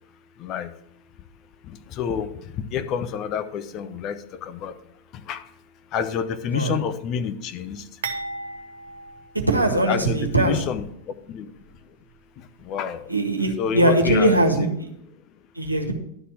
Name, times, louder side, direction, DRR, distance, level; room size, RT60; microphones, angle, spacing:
voice 1, 0.4-0.7 1.7-4.8 5.1-5.4 5.9-7.9 9.9-11.5 12.4-13.1 13.6-14.3 14.6-14.7, left 7 dB, 35° left, 9 dB, 0.7 m, -29 dB
sound 1, 8.0-10.2 10.5-10.7 11.6-11.7, right 3 dB, 60° right, 1.0 m, -36 dB
voice 2, 9.5-10.6 13.1-14.9 15.5-15.9, right 1 dB, 85° right, 2 dB, 1.5 m, -20 dB
11.5 x 4.2 x 7.5 m, 0.74 s
figure-of-eight pair, 90°, 0 cm